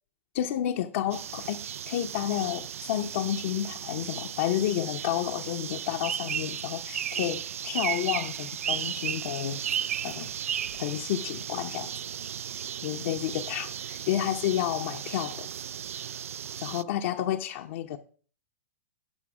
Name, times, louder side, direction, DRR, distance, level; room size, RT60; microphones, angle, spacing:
voice 1, 0.3-9.6 10.0-10.3 10.7-11.9 12.8-15.5 16.6-18.0, left 12 dB, 60° left, 0.7 m, -30 dB
sound 1, 1.1-16.8, right 9 dB, 80° right, 0.3 m, -35 dB
11.5 x 5.2 x 4.8 m
hypercardioid pair, 120°, 7 cm